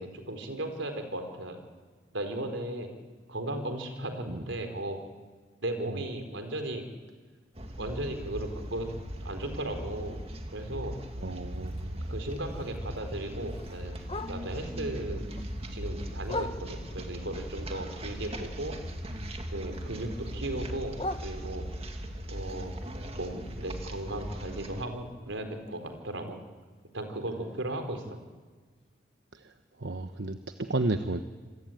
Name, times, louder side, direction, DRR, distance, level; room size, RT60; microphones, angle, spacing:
voice 1, 0.0-1.6 2.1-2.9 3.3-5.0 5.6-6.9 7.8-8.9 9.2-10.2 10.5-10.9 12.1-15.3 15.7-18.8 19.5-21.0 21.2-21.7 22.3-22.7 23.2-26.4 26.9-28.0, right 1 dB, 85° right, 6 dB, 4.2 m, -36 dB
sound 1, 7.6-24.8, equal, 30° right, 2.2 m, -39 dB
voice 2, 11.2-12.0 29.4-29.5 29.8-31.2, right 2 dB, 65° right, 8 dB, 1.1 m, -32 dB
Bark, 11.5-14.7 15.1-17.0 17.5-19.3 19.6-21.9 22.4-26.3 26.6-26.7 27.0-27.4 27.8-27.9 28.3-28.4 28.9-29.0, left 2 dB, 30° left, 1.4 m, -43 dB
27.0 x 22.0 x 9.3 m, 1.4 s
head